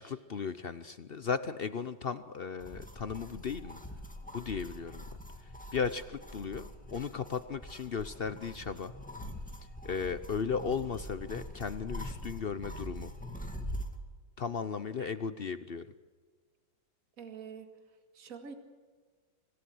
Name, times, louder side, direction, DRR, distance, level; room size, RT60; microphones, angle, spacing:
voice 1, 0.0-3.8 4.3-5.0 5.7-8.9 9.8-13.1 14.4-15.9, left 6 dB, 55° left, 12 dB, 0.6 m, -36 dB
sound 1, 2.6-14.0, equal, 5° left, 2.0 m, -44 dB
voice 2, 17.2-17.7 18.1-18.5, right 6 dB, 50° right, 6 dB, 2.4 m, -45 dB
26.0 x 17.0 x 7.8 m, 1.5 s
omnidirectional pair, 2.0 m